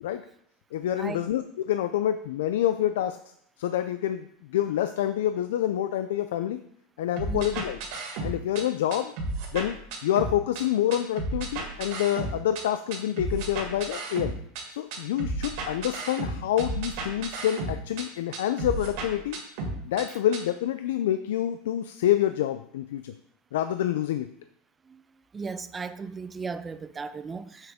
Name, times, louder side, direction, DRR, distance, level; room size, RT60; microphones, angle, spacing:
voice 1, 0.7-3.2 3.6-6.6 7.0-7.8 8.2-9.1 9.5-14.3 14.7-19.4 19.9-23.1 23.5-24.3, left 11 dB, 85° left, 0.4 m, -27 dB
sound 1, 7.2-8.6 8.9-10.6 10.9-12.6 12.9-14.6 14.9-18.0 18.3-20.0 20.3-20.4, right 2 dB, 60° right, 2.0 m, -33 dB
voice 2, 7.3-7.6 24.9-25.0 25.3-27.7, right 5 dB, 15° right, 0.4 m, -36 dB
7.3 x 6.4 x 3.5 m
supercardioid pair, 155°, 0 cm